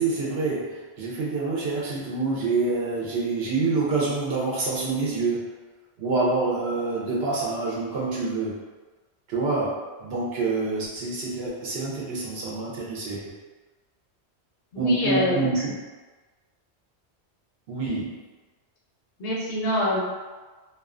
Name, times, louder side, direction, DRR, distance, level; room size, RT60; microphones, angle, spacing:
voice 1, 0.0-5.5 6.0-8.5 9.3-13.2 14.8-15.8 17.7-18.1, right 3 dB, 70° right, -5 dB, 0.9 m, -26 dB
voice 2, 14.7-15.5 19.2-20.0, left 1 dB, 65° left, -4 dB, 0.8 m, -25 dB
2.4 x 2.2 x 2.4 m, 1.3 s
omnidirectional pair, 1.1 m